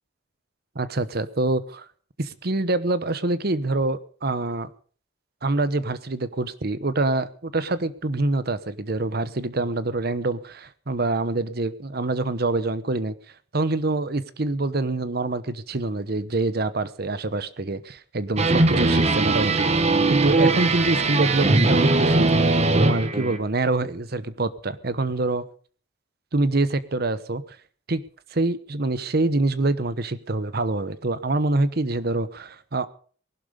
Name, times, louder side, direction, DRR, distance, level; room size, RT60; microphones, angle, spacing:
voice 1, 0.7-1.9 2.2-4.7 5.4-13.1 13.5-22.3 22.8-25.4 26.3-27.6 27.9-28.0 28.3-32.9, right 2 dB, 55° right, 15 dB, 1.0 m, -25 dB
sound 1, 18.4-23.4, right 2 dB, 35° right, 1.4 m, -20 dB
19.5 x 12.0 x 5.1 m, 0.44 s
head